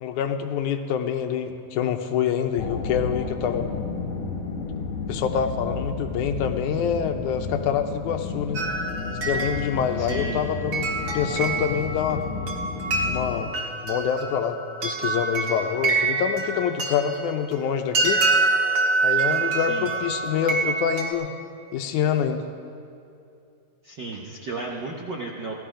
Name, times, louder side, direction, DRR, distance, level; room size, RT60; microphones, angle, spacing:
voice 1, 0.0-3.7 5.1-8.6 9.2-10.9 11.1-12.2 13.1-13.5 13.8-18.2 19.0-21.3 21.7-22.5, left 8 dB, 80° left, 6 dB, 2.2 m, -26 dB
sound 1, 2.6-13.5, left 4 dB, 65° left, 2.5 m, -32 dB
sound 2, 8.5-21.1, right 3 dB, 45° right, 1.9 m, -26 dB
voice 2, 10.0-10.4 19.7-19.9 23.8-25.5, right 3 dB, 65° right, -2 dB, 1.1 m, -34 dB
17.0 x 14.0 x 5.0 m, 2.6 s
omnidirectional pair, 3.5 m